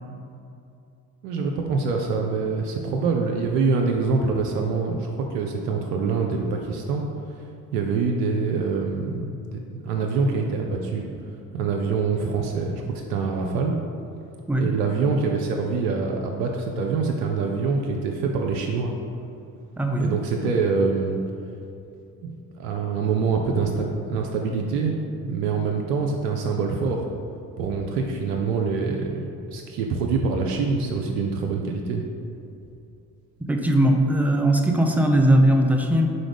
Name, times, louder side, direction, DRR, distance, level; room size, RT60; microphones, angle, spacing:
voice 1, 1.2-7.4 7.7-11.1 11.5-13.8 14.6-18.9 20.0-21.2 22.2-27.1 27.6-32.0, right 4 dB, 70° right, 2 dB, 0.6 m, -25 dB
voice 2, 19.8-20.1 33.5-36.1, right 1 dB, 5° right, 2 dB, 0.6 m, -19 dB
4.9 x 4.0 x 5.1 m, 2.7 s
figure-of-eight pair, 45°, 49 cm